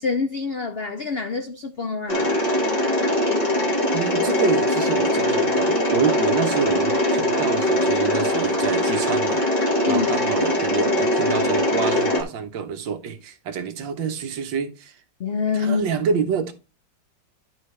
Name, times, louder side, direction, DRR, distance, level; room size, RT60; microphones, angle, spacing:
voice 1, 0.0-2.4 9.9-10.1 15.2-15.8, left 5 dB, 80° left, 0.5 m, -26 dB
Mechanisms, 2.1-12.2, left 1 dB, 20° left, 1.7 m, -21 dB
voice 2, 3.9-15.0 15.6-16.5, right 6 dB, 90° right, 1.8 m, -27 dB
11.5 x 5.1 x 3.3 m
omnidirectional pair, 2.0 m